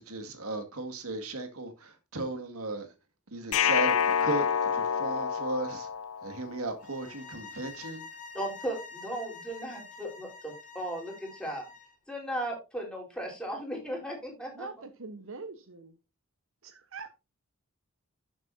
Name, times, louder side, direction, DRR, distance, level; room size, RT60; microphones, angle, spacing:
voice 1, 0.0-2.9 3.3-4.5 4.7-5.9 6.2-8.0, right 2 dB, 85° right, 2.1 m, -35 dB
sound 1, 3.5-6.6, left 7 dB, 80° left, 0.7 m, -28 dB
sound 2, 6.8-11.9, left 4 dB, 35° left, 2.5 m, -47 dB
voice 2, 8.3-11.6 12.1-14.7, right 1 dB, 5° left, 4.3 m, -36 dB
voice 3, 14.5-16.0 16.6-17.1, right 4 dB, 65° right, 1.0 m, -44 dB
12.5 x 7.4 x 2.7 m
head